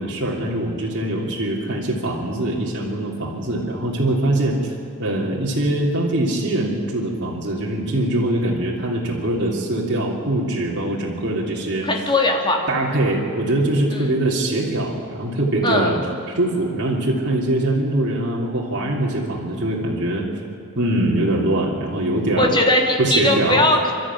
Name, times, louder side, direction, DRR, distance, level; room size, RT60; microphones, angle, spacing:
voice 1, 0.0-4.7 5.0-12.1 12.7-16.0 16.3-20.3 20.7-22.7 23.0-23.7, right 1 dB, 55° right, -4 dB, 3.1 m, -22 dB
voice 2, 11.8-12.7 13.9-14.1 15.6-16.0 22.4-23.9, left 1 dB, 20° left, 1 dB, 2.8 m, -19 dB
28.0 x 13.0 x 9.8 m, 2.7 s
head